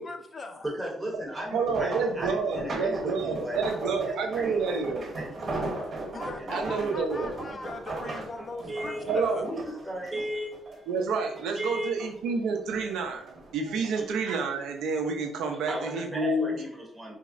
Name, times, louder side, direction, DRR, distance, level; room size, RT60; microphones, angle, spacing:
voice 1, 0.0-0.7 6.1-9.4, left 3 dB, 35° left, 6 dB, 0.4 m, -40 dB
voice 2, 0.7-5.9 6.4-6.9 8.7-9.2 9.4-10.8 11.5-11.9 15.7-17.2, equal, 5° right, -3 dB, 0.7 m, -36 dB
sound 1, 1.4-11.0 11.3-12.3 12.7-14.0 14.8-15.1 15.5-15.6, right 2 dB, 50° right, 1.0 m, -38 dB
voice 3, 1.5-5.0 6.5-7.3 8.6-8.7 9.0-9.6 10.9-16.5, right 4 dB, 85° right, 3 dB, 0.4 m, -29 dB
3.5 x 2.0 x 2.4 m, 0.72 s
cardioid pair, 90°, 0 cm